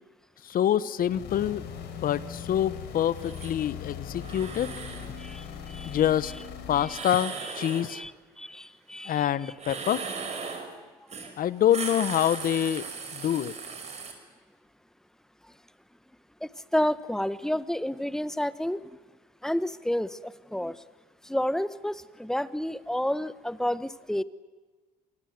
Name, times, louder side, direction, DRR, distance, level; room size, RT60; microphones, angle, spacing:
voice 1, 0.5-1.6 2.0-4.7 5.9-6.3 6.7-8.0 9.1-10.0 11.4-12.8 13.1-13.5, left 10 dB, 55° left, 16 dB, 1.2 m, -26 dB
sound 1, 1.0-7.1, left 7 dB, 75° left, 4.0 m, -40 dB
sound 2, 3.2-3.5 4.2-5.1 6.9-7.9 9.5-10.7 11.1-11.3 11.6-14.1, right 5 dB, 40° right, 5.6 m, -37 dB
voice 2, 5.2-6.0 6.8-7.1 7.4-7.5 7.9-8.1 8.4-9.5 13.4-13.5 16.4-18.8 19.4-20.8 21.2-24.2, left 1 dB, 5° left, 15 dB, 1.1 m, -30 dB
27.0 x 19.5 x 9.5 m, 1.3 s
supercardioid pair, 90°, 17 cm